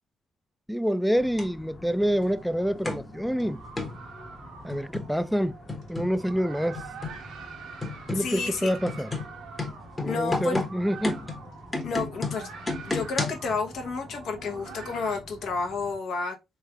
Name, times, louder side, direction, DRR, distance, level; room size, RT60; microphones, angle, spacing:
voice 1, 0.7-3.6 4.6-5.6 5.9-6.8 8.1-9.1 10.0-11.2, equal, ahead, 0.3 m, -27 dB
sound 1, 1.1-16.0, left 1 dB, 45° left, 1.3 m, -48 dB
sound 2, 1.4-1.5 2.8-3.1 3.8-4.0 4.7-5.2 5.7-6.2 6.7-7.2 7.8-8.3 8.9-13.5, left 2 dB, 20° left, 0.9 m, -32 dB
sound 3, 2.2-15.1, right 5 dB, 80° right, 0.9 m, -46 dB
voice 2, 8.1-8.7 10.0-10.7 11.8-12.5 12.8-16.4, left 4 dB, 70° left, 0.9 m, -31 dB
3.5 x 3.2 x 2.3 m
cardioid pair, 90°, 0 cm